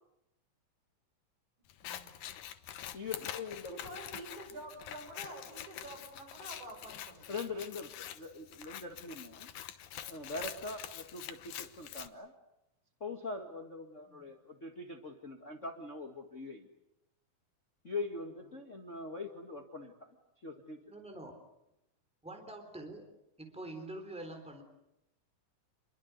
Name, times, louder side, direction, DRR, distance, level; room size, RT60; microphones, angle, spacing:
Scissors, 1.7-12.1, left 11 dB, 75° left, 2.6 m, -46 dB
voice 1, 1.8-2.2 3.7-7.4 14.1-14.3, right 1 dB, 70° right, 3 dB, 7.7 m, -48 dB
voice 2, 2.9-3.8 7.3-9.5 10.1-12.3 13.0-16.7 17.8-20.1 20.4-20.8, left 3 dB, 30° left, 3 dB, 1.8 m, -42 dB
voice 3, 20.9-21.4 22.2-23.1 23.4-24.6, right 1 dB, ahead, 5 dB, 3.6 m, -45 dB
28.5 x 22.5 x 8.2 m, 0.86 s
omnidirectional pair, 3.6 m